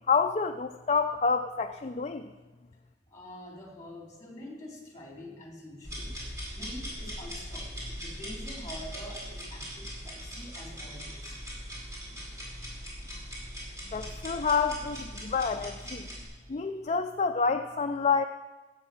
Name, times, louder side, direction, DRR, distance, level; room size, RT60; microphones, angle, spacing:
voice 1, 0.1-2.3 13.9-16.1 16.5-18.2, left 5 dB, 35° left, 7 dB, 0.4 m, -28 dB
voice 2, 3.1-6.2 6.5-11.3, left 1 dB, 20° left, -1 dB, 3.2 m, -46 dB
sound 1, 5.8-16.2, equal, 15° right, 4.6 m, -40 dB
16.5 x 8.2 x 5.8 m, 1.2 s
head